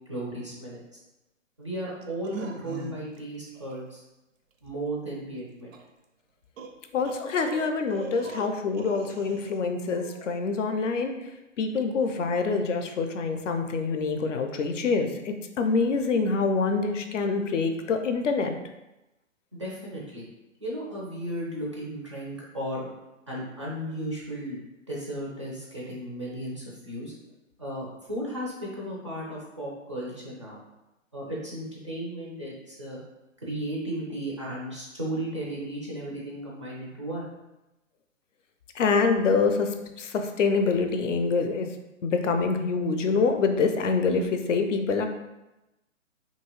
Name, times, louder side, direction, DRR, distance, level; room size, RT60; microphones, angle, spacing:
voice 1, 0.1-0.8 1.6-4.0 4.6-5.7 19.5-20.3 20.6-22.9 23.3-24.6 24.9-27.1 27.6-30.6 31.1-33.0 33.4-37.2, right 1 dB, 25° right, -4 dB, 0.3 m, -35 dB
sound 1, 2.0-3.2 3.5-3.8 5.7-5.8 6.6-9.6 9.9-10.4, right 4 dB, 75° right, 0.5 m, -40 dB
voice 2, 6.9-11.3 11.6-18.5 38.7-41.7 42.0-45.1, left 4 dB, 65° left, 6 dB, 0.5 m, -26 dB
2.7 x 2.6 x 2.9 m, 0.97 s
figure-of-eight pair, 130°, 40 cm